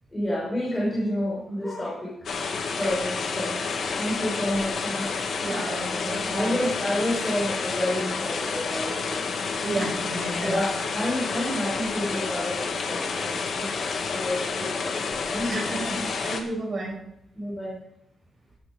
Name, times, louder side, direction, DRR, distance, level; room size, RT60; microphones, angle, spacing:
voice 1, 0.1-2.5 2.8-3.6 3.9-5.1 6.3-9.4 10.4-13.7 14.1-16.0 17.3-17.8, left 1 dB, 15° left, -5 dB, 5.5 m, -29 dB
sound 1, 2.3-16.4, left 5 dB, 60° left, 2.0 m, -29 dB
voice 2, 5.4-6.6 9.6-10.5 15.5-17.0, right 2 dB, 35° right, -2 dB, 6.7 m, -32 dB
14.0 x 11.0 x 5.2 m, 0.79 s
wide cardioid pair, 135°, 0 cm